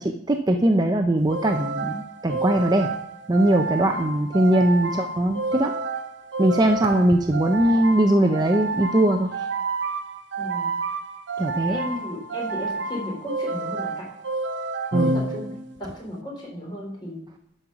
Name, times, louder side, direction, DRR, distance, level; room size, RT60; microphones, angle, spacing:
voice 1, 0.0-2.9 3.3-5.7 6.4-9.5 11.4-11.8 14.9-15.2, right 1 dB, 20° right, 4 dB, 0.5 m, -21 dB
sound 1, 1.3-15.8, right 3 dB, 80° right, 0.7 m, -30 dB
voice 2, 10.4-10.7 11.7-14.1 14.9-15.5 15.8-17.2, left 1 dB, 25° left, -2 dB, 4.0 m, -35 dB
11.5 x 5.6 x 5.9 m, 0.70 s
head